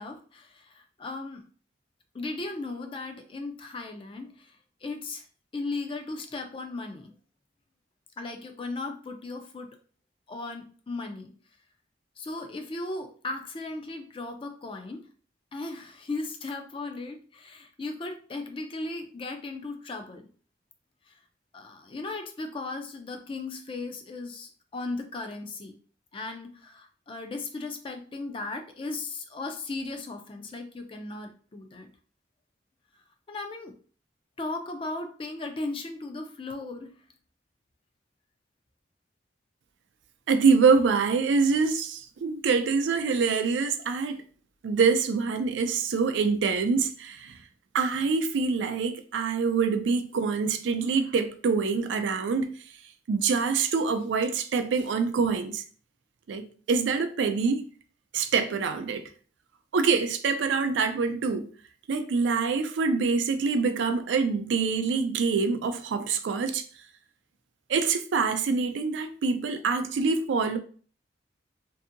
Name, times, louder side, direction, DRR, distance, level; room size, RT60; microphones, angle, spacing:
voice 1, 0.0-1.4 2.1-5.2 5.5-7.1 8.2-9.8 10.3-11.3 12.2-15.0 15.5-20.2 21.1-21.2 21.5-25.8 26.1-31.9 33.3-33.7 34.4-36.9, left 3 dB, 30° left, 0.4 m, -36 dB
voice 2, 40.3-44.2 44.6-47.4 47.7-52.6 53.1-55.6 56.3-57.6 58.1-59.1 59.7-61.5 61.9-66.6 67.7-70.6, right 5 dB, 85° right, 0.4 m, -25 dB
2.7 x 2.6 x 2.5 m
head